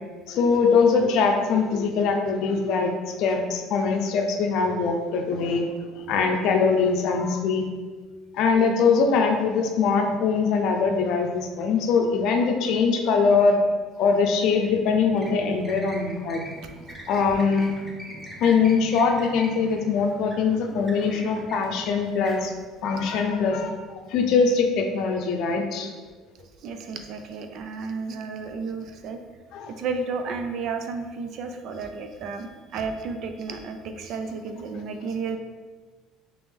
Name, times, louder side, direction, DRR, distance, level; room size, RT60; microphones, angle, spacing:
voice 1, 0.3-5.6 5.9-7.7 8.3-13.6 14.0-16.4 17.1-17.7 18.4-22.5 22.8-23.8 24.1-25.9 29.5-29.7, left 5 dB, 65° left, 4 dB, 0.5 m, -22 dB
sound 1, 14.4-23.7, right 1 dB, 10° right, 0.6 m, -42 dB
voice 2, 26.6-29.2 29.8-35.4, right 4 dB, 60° right, 6 dB, 0.4 m, -32 dB
3.3 x 3.0 x 3.5 m, 1.4 s
cardioid pair, 110°, 0 cm